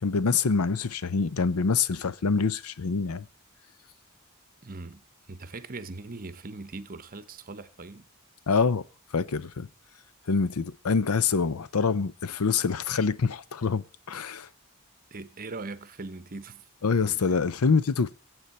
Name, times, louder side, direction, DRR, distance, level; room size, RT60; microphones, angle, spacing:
voice 1, 0.0-3.3 8.5-8.8 9.1-9.7 10.3-14.5 16.8-18.1, left 5 dB, 85° left, 0.6 m, -25 dB
voice 2, 4.6-8.1 15.1-16.7 17.1-17.4, right 3 dB, 40° right, 0.9 m, -41 dB
22.0 x 8.0 x 4.2 m
head